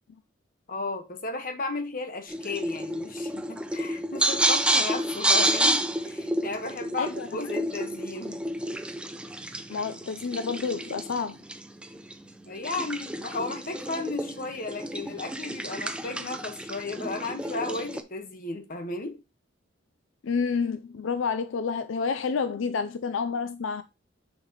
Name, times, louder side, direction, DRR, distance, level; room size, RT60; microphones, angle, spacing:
voice 1, 0.7-8.4 12.5-19.2, left 3 dB, 45° left, 1.2 m, -34 dB
sound 1, 2.3-18.0, right 1 dB, 5° right, 0.5 m, -30 dB
voice 2, 7.0-7.6 9.7-11.4 20.2-23.8, left 5 dB, 75° left, 0.4 m, -29 dB
6.5 x 5.9 x 3.0 m
head